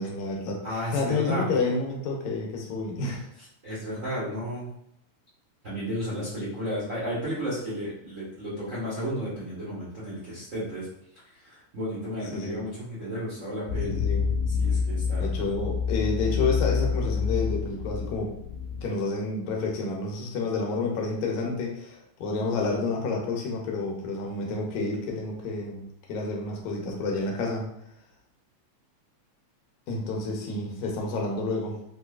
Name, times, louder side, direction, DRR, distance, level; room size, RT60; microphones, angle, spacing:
voice 1, 0.0-3.3 12.3-12.6 13.9-14.3 15.2-18.4 18.8-27.7 29.9-31.8, left 3 dB, 80° left, 0 dB, 2.0 m, -29 dB
voice 2, 0.6-1.5 3.6-4.7 5.6-10.9 11.4-14.0 14.6-15.3, equal, 85° right, -11 dB, 0.7 m, -33 dB
sound 1, 13.7-18.8, left 6 dB, 60° left, 2.1 m, -27 dB
5.1 x 2.2 x 2.3 m, 0.75 s
omnidirectional pair, 3.3 m